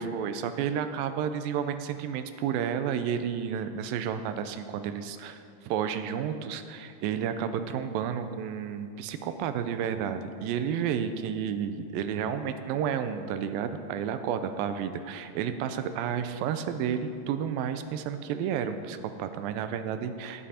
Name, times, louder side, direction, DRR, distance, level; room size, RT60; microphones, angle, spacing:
voice 1, 0.0-20.5, right 8 dB, 90° right, 9 dB, 2.4 m, -31 dB
18.5 x 7.5 x 4.3 m, 2.4 s
omnidirectional pair, 4.0 m